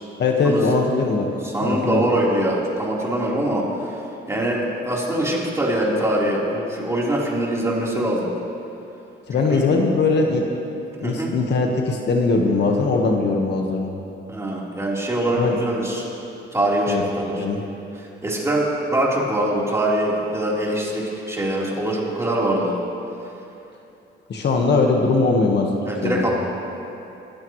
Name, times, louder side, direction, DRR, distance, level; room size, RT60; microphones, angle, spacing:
voice 1, 0.2-1.3 1.6-2.0 9.3-10.5 11.0-13.9 15.4-15.6 16.9-17.0 17.4-17.6 24.3-25.7 26.0-26.2, left 3 dB, 60° left, 1 dB, 1.6 m, -20 dB
voice 2, 1.4-4.0 4.3-8.3 9.5-9.6 11.0-11.3 14.3-16.1 16.5-17.4 18.0-22.7 24.6-24.7 25.8-26.3, right 1 dB, 15° right, -5 dB, 4.1 m, -23 dB
21.0 x 16.0 x 3.3 m, 2.8 s
cardioid pair, 90°, 20 cm